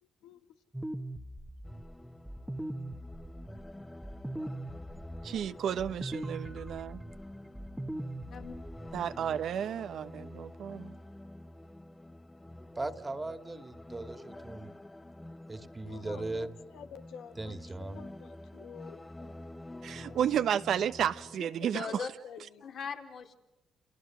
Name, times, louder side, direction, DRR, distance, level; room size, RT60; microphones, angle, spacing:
voice 1, 0.0-0.5 15.8-19.5 20.0-20.9 21.4-22.6, left 7 dB, 85° left, 1.4 m, -50 dB
sound 1, 0.7-9.0, right 1 dB, 5° right, 1.5 m, -41 dB
sound 2, 1.6-21.4, left 1 dB, 15° left, 1.0 m, -48 dB
voice 2, 5.2-7.0 8.9-10.9 19.8-21.9, right 9 dB, 70° right, 1.1 m, -32 dB
voice 3, 12.8-14.7 15.5-16.5 17.4-18.0, right 2 dB, 20° right, 2.2 m, -38 dB
voice 4, 21.7-22.1 22.6-23.3, left 5 dB, 60° left, 4.1 m, -40 dB
30.0 x 28.5 x 6.3 m
cardioid pair, 90°, 0 cm